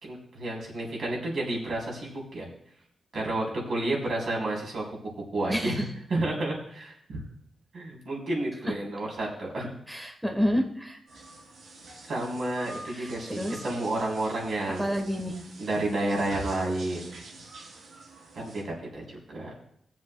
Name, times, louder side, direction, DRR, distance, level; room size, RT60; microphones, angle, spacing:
voice 1, 0.0-2.5 3.1-5.8 6.1-7.2 7.7-9.7 12.1-14.9 15.6-17.1 18.3-19.5, right 2 dB, 60° right, -2 dB, 3.4 m, -31 dB
voice 2, 5.5-5.8 9.9-11.0 12.9-13.6 14.8-15.4, equal, 5° right, 3 dB, 1.2 m, -29 dB
sound 1, 11.1-18.6, right 2 dB, 90° right, 2.8 m, -45 dB
19.0 x 7.6 x 2.2 m, 0.69 s
wide cardioid pair, 135°, 0 cm